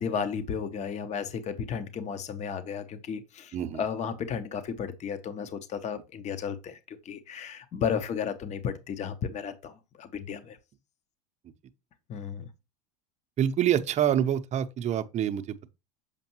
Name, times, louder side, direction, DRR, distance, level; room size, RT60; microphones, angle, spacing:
voice 1, 0.0-10.6 12.1-12.5, left 7 dB, 35° left, 0.8 m, -34 dB
voice 2, 13.4-15.7, right 10 dB, 35° right, 0.6 m, -26 dB
6.7 x 5.2 x 2.9 m
hypercardioid pair, 95°, 21 cm